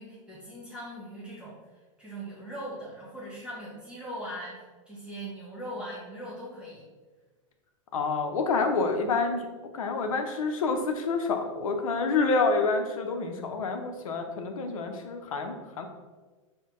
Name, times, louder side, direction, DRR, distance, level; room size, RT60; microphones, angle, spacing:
voice 1, 0.0-1.6 2.0-6.8, right 1 dB, 5° right, -5 dB, 1.2 m, -40 dB
voice 2, 7.9-9.5 9.7-15.9, left 4 dB, 85° left, 5 dB, 0.7 m, -28 dB
4.4 x 2.3 x 4.7 m, 1.3 s
hypercardioid pair, 140°, 17 cm